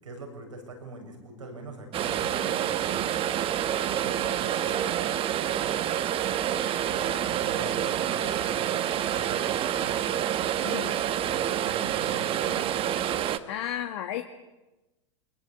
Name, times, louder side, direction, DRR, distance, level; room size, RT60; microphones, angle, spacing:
voice 1, 0.0-3.4 3.6-5.8 6.8-8.8 9.1-10.0 11.2-12.8, right 2 dB, 85° right, 2 dB, 7.3 m, -43 dB
sound 1, 1.9-13.4, right 10 dB, 35° right, 1.4 m, -28 dB
voice 2, 10.6-11.0 13.5-14.2, left 11 dB, 65° left, 6 dB, 1.5 m, -33 dB
23.0 x 21.0 x 8.7 m, 1.1 s
hypercardioid pair, 95°, 16 cm